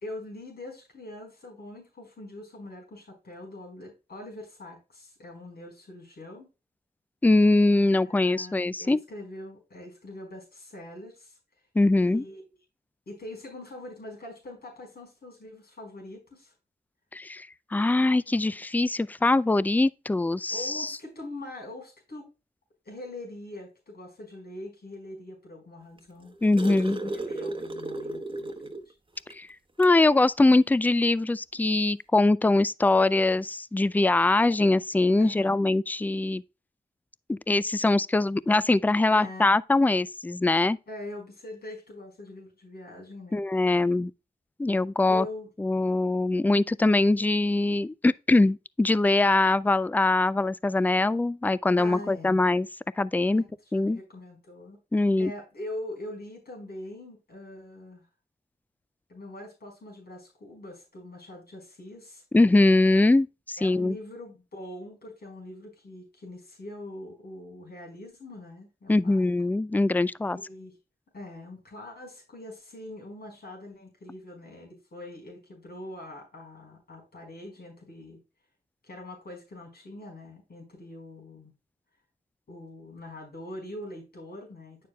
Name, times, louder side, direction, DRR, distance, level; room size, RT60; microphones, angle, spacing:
voice 1, 0.0-6.5 8.0-11.4 12.0-12.4 13.1-16.5 20.5-22.3 22.8-28.9 35.2-35.6 39.1-39.6 40.9-43.5 45.1-45.5 51.8-52.4 53.3-53.4 53.7-54.8 55.2-58.1 59.1-62.2 63.6-69.3 70.3-70.8 71.1-78.2 78.8-81.5 82.5-84.9, left 1 dB, 70° left, 4.6 m, -43 dB
voice 2, 7.2-9.0 11.8-12.2 17.1-17.5 17.7-20.9 26.4-27.0 29.3-29.5 29.8-36.4 37.3-40.8 43.3-44.1 44.6-45.3 45.6-52.7 53.0-53.4 53.7-54.0 54.9-55.3 62.3-64.0 68.9-70.4, left 2 dB, 10° left, 0.3 m, -22 dB
sound 1, 26.0-28.9 29.3-29.4 29.8-30.0 31.1-31.2, right 2 dB, 30° right, 1.0 m, -35 dB
9.3 x 6.6 x 2.3 m
cardioid pair, 55°, 17 cm